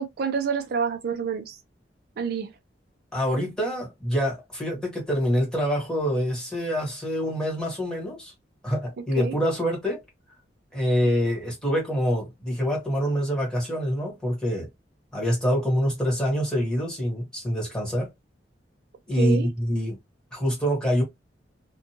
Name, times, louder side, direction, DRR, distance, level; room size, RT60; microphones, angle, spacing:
voice 1, 0.0-1.6 2.2-2.5 9.2-9.3 19.2-19.5, right 6 dB, 60° right, 0.4 m, -28 dB
voice 2, 3.1-8.3 8.6-10.0 10.7-14.7 15.1-18.1 19.1-20.0 20.3-21.0, equal, 5° left, 1.4 m, -25 dB
2.6 x 2.2 x 2.8 m
head